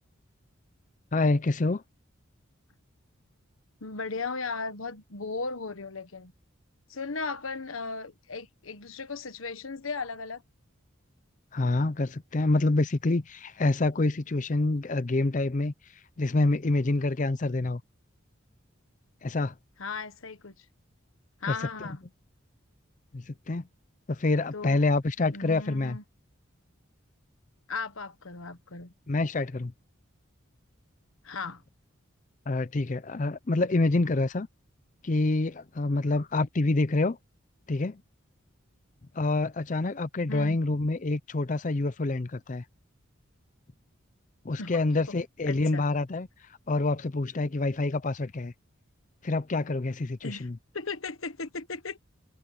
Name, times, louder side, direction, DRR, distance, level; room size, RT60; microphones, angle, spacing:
voice 1, 1.1-1.8 11.5-15.7 16.2-17.8 19.2-19.5 21.4-21.6 23.1-23.6 24.1-26.0 29.1-29.7 32.5-34.5 35.0-37.2 37.7-38.0 39.1-42.6 44.4-46.3 46.7-48.5 49.2-50.5, left 2 dB, 40° left, 0.5 m, -27 dB
voice 2, 3.8-6.3 6.9-10.4 19.8-20.6 21.4-22.0 24.5-24.8 25.3-26.0 27.7-28.9 31.2-31.6 40.3-40.6 44.6-44.8 45.5-45.8 50.2-50.5 50.7-52.0, left 4 dB, 85° left, 1.4 m, -36 dB
head